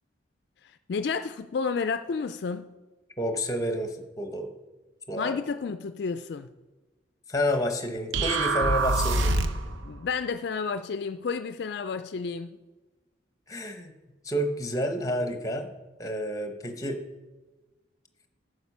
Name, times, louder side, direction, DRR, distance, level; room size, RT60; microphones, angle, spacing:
voice 1, 0.6-2.7 5.2-6.5 9.7-12.6, left 5 dB, 55° left, 0.3 m, -31 dB
voice 2, 3.2-4.5 5.1-5.4 7.3-9.4 13.5-13.9 14.2-15.7 16.0-17.0, equal, 15° left, 0.9 m, -29 dB
sound 1, 8.1-9.7, right 3 dB, 80° right, 0.7 m, -25 dB
9.4 x 6.5 x 5.4 m
head